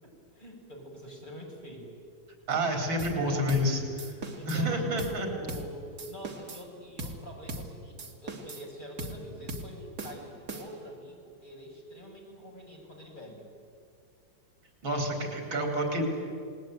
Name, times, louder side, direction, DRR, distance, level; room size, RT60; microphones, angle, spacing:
voice 1, 0.0-1.9 3.3-3.6 4.3-13.5, equal, 25° left, -2 dB, 6.2 m, -46 dB
voice 2, 2.5-3.8 4.5-5.3 14.8-16.0, equal, 85° right, 2 dB, 4.7 m, -28 dB
sound 1, 3.0-3.2 3.5-3.7 4.0-4.6 5.0-5.2 5.5-5.7 6.0-6.7 7.0-7.2 7.5-7.7 8.0-8.7 9.0-9.2 9.5-9.7 10.0-10.9, right 2 dB, 55° right, 2.6 m, -39 dB
28.5 x 19.5 x 9.1 m, 2.3 s
omnidirectional pair, 2.1 m